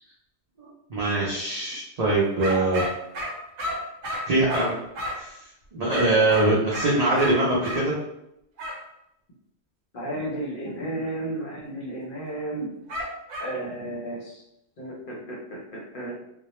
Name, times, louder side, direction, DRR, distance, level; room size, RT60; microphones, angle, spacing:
voice 1, 0.6-2.9 4.3-4.8 5.2-5.4 5.7-7.9, right 2 dB, 50° right, -6 dB, 0.4 m, -23 dB
sound 1, 2.4-5.3 5.9-7.9 8.6-8.8 12.9-13.6, equal, 70° right, 0.9 m, -32 dB
voice 2, 9.9-12.7 13.4-14.4 14.8-16.2, right 1 dB, 55° left, -3 dB, 0.7 m, -33 dB
2.2 x 2.0 x 2.9 m, 0.81 s
omnidirectional pair, 1.2 m